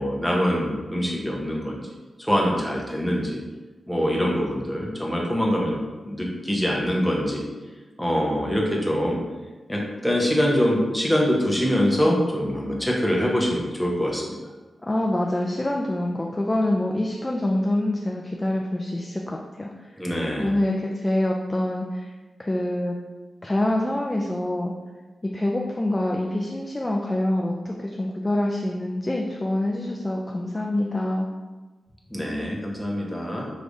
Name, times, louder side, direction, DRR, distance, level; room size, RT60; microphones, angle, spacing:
voice 1, 0.0-1.8 2.2-3.4 3.9-5.8 6.1-7.4 8.0-9.2 9.7-14.4 20.0-20.5 32.1-33.5, equal, ahead, -3 dB, 0.9 m, -24 dB
voice 2, 14.8-19.7 20.4-22.1 22.4-22.9 23.4-24.7 25.2-31.3, left 1 dB, 20° left, 0 dB, 0.4 m, -25 dB
4.8 x 3.2 x 2.6 m, 1.3 s
wide cardioid pair, 95°, 0 cm